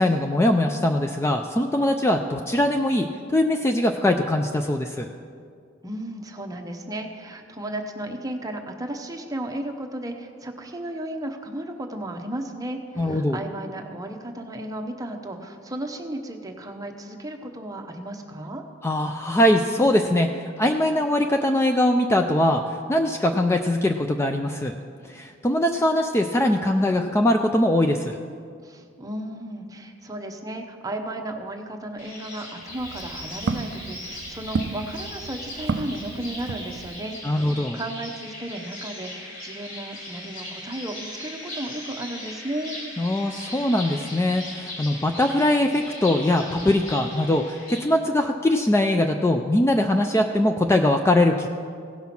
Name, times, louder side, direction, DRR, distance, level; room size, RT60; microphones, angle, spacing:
voice 1, 0.0-5.1 13.0-13.4 18.8-24.7 25.0-28.2 37.2-37.8 43.0-51.5, left 1 dB, 15° left, 5 dB, 0.4 m, -22 dB
voice 2, 5.8-18.6 28.6-42.8, right 1 dB, 20° right, 4 dB, 0.8 m, -34 dB
sound 1, 32.0-47.8, left 1 dB, 45° left, 2.8 m, -38 dB
Walk footsteps, 32.6-37.2, right 4 dB, 60° right, 0.4 m, -33 dB
16.5 x 5.6 x 5.9 m, 2.2 s
head